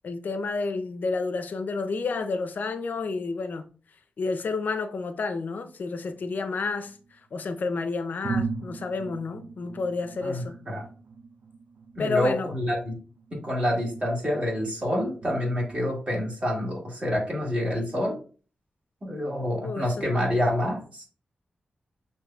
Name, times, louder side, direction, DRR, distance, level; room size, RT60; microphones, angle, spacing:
voice 1, 0.0-3.7 4.2-7.0 7.3-10.5 12.0-12.6 19.6-20.1, left 4 dB, 65° left, 0.5 m, -30 dB
sound 1, 5.8-7.2 7.7-7.8 8.2-15.8, right 4 dB, 75° right, 0.5 m, -39 dB
voice 2, 10.2-10.8 12.0-12.9 13.3-18.1 19.0-21.0, left 1 dB, 35° right, 1.8 m, -27 dB
6.3 x 2.8 x 2.3 m
wide cardioid pair, 100°, 3 cm